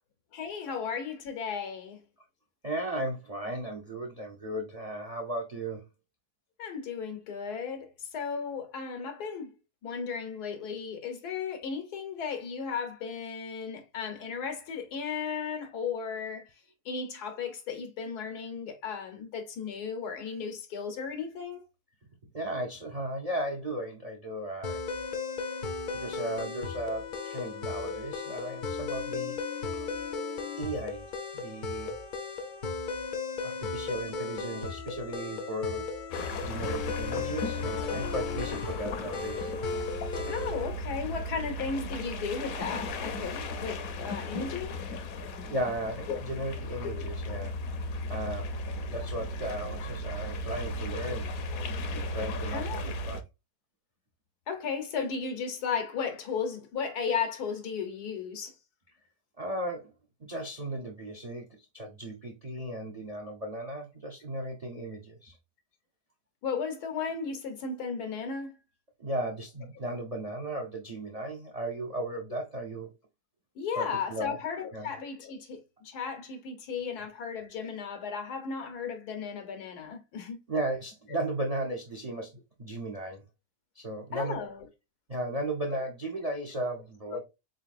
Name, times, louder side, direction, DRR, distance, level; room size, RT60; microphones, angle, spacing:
voice 1, 0.3-2.0 6.6-9.5 9.8-16.5 16.8-21.6 40.2-44.8 46.1-46.2 47.0-47.1 52.5-52.8 54.5-58.5 66.4-68.5 73.5-80.4 81.1-81.2 84.1-84.7 87.1-87.2, left 6 dB, 90° left, 1.6 m, -35 dB
voice 2, 2.6-5.8 22.3-24.8 25.9-29.4 29.7-29.9 30.6-32.0 33.4-35.9 36.1-39.5 45.5-47.5 48.1-48.5 48.9-51.3 52.1-53.2 59.4-59.9 60.2-65.4 69.0-72.9 73.7-74.4 74.7-74.9 80.5-82.3 82.6-83.2 83.7-84.4 85.1-87.2, right 1 dB, 55° right, 0.4 m, -36 dB
sound 1, 24.6-40.7, left 4 dB, 55° left, 0.5 m, -36 dB
sound 2, 36.1-53.2, left 1 dB, 70° left, 1.1 m, -36 dB
4.0 x 3.8 x 2.4 m
omnidirectional pair, 1.6 m